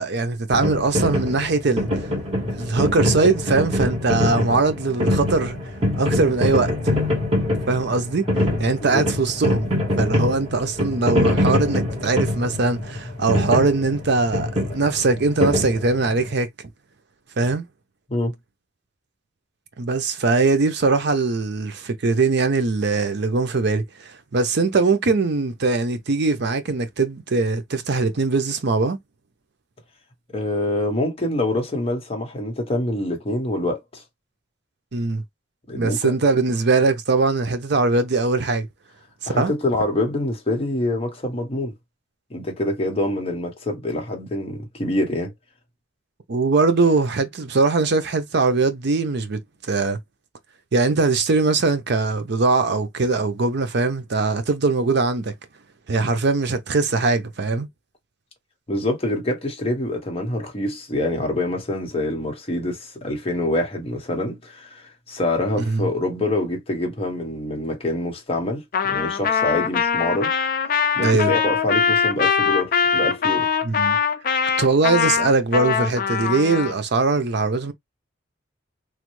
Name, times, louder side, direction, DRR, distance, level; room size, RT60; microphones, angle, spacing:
voice 1, 0.0-2.1 2.6-5.6 6.0-7.0 7.7-8.3 8.6-9.7 10.0-16.7 17.4-17.7 19.8-29.0 34.9-35.2 35.7-38.7 39.2-39.5 46.3-50.0 50.7-55.3 55.9-57.7 65.6-65.9 71.0-71.3 73.6-74.0 74.6-77.7, right 3 dB, 60° right, 0.6 m, -21 dB
sound 1, 0.5-16.3, left 1 dB, 30° right, 2.0 m, -24 dB
voice 2, 30.3-34.0 35.7-36.2 39.3-41.7 42.3-45.3 58.7-70.3 71.0-73.5, left 1 dB, 30° left, 0.9 m, -25 dB
Trumpet, 68.7-76.7, left 7 dB, 45° left, 0.5 m, -22 dB
3.2 x 2.1 x 3.1 m
head